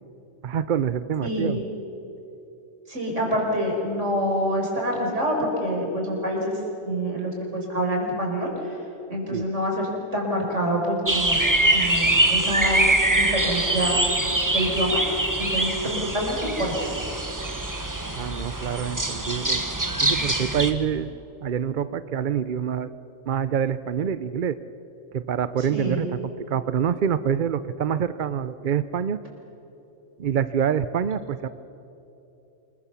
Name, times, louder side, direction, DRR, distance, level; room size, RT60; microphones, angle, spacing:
voice 1, 0.4-1.6 9.3-9.5 18.2-19.7 20.0-21.2 21.4-22.9 23.2-24.6 25.1-29.2 30.2-31.5, right 8 dB, 50° right, 14 dB, 0.6 m, -26 dB
voice 2, 1.2-1.6 2.9-6.6 6.8-8.8 9.1-14.0 14.5-15.0 15.4-16.8 25.7-26.1, equal, 70° right, 0 dB, 5.5 m, -26 dB
sound 1, 11.1-20.7, right 1 dB, 15° right, 1.3 m, -24 dB
27.5 x 21.5 x 7.0 m, 3.0 s
omnidirectional pair, 1.3 m